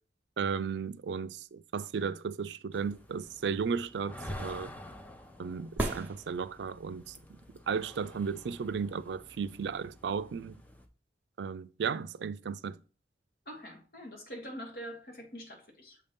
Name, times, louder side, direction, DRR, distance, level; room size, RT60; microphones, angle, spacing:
voice 1, 0.4-4.7 5.4-7.4 7.7-10.6 11.4-12.8, right 6 dB, 80° right, 0.4 m, -35 dB
sound 1, 2.7-10.9, left 1 dB, 10° left, 0.5 m, -48 dB
sound 2, 5.8-6.9 10.8-10.9, right 1 dB, 10° right, 0.9 m, -35 dB
voice 2, 13.4-16.0, equal, 55° left, 1.6 m, -44 dB
7.0 x 2.7 x 5.2 m
head